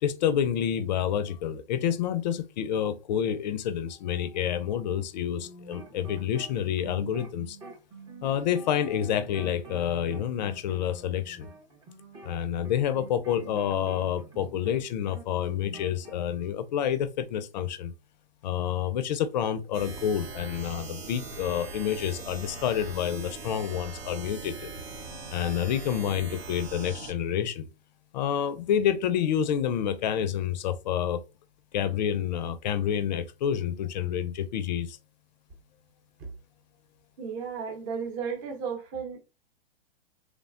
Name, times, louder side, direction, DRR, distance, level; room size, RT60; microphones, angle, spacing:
voice 1, 0.0-7.6 8.2-11.5 12.2-17.9 18.4-24.7 25.3-27.7 28.1-31.2 31.7-35.0, left 9 dB, 45° left, 0.4 m, -28 dB
sound 1, 5.3-14.9 15.1-16.1, right 3 dB, 15° right, 0.4 m, -46 dB
sound 2, 19.7-27.1, right 4 dB, 85° right, 0.9 m, -41 dB
voice 2, 37.2-39.2, right 6 dB, 35° right, 0.8 m, -34 dB
3.1 x 2.1 x 2.4 m
hypercardioid pair, 125°, 30 cm